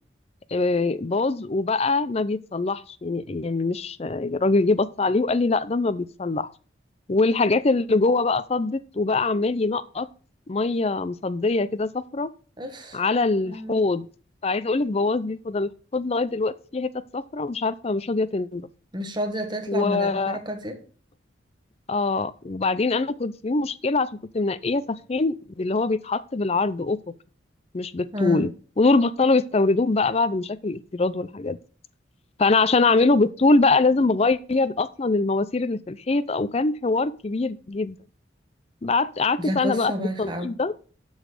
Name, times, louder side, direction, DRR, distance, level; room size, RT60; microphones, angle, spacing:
voice 1, 0.5-6.5 7.1-10.1 10.5-12.3 12.9-14.1 14.4-18.7 19.7-20.4 21.9-24.1 24.3-27.0 27.7-28.5 28.8-31.6 32.4-38.0 38.8-40.7, left 3 dB, 35° left, 0.5 m, -23 dB
voice 2, 12.6-13.0 13.4-13.8 18.9-20.8 28.1-28.5 39.4-40.5, equal, 25° right, 1.5 m, -30 dB
12.0 x 4.0 x 6.6 m
head